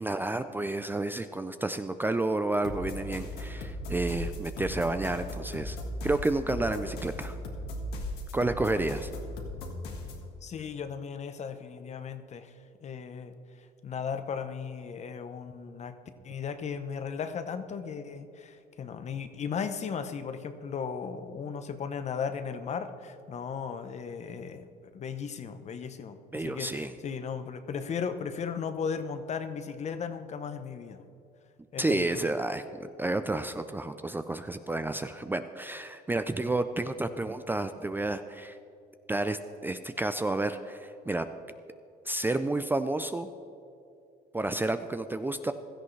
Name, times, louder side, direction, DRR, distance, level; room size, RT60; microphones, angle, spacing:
voice 1, 0.0-5.8 6.0-7.4 8.3-9.1 26.3-26.9 31.8-38.6 39.1-41.3 42.1-43.3 44.3-45.5, right 2 dB, 10° right, 9 dB, 0.4 m, -30 dB
sound 1, 2.6-10.3, left 1 dB, 80° left, 1.7 m, -37 dB
voice 2, 10.4-12.5 12.8-13.3 13.8-16.0 16.2-24.7 24.9-31.0 31.7-32.3, left 6 dB, 40° left, 10 dB, 0.8 m, -36 dB
16.5 x 13.0 x 3.3 m, 2.6 s
cardioid pair, 110°, 17 cm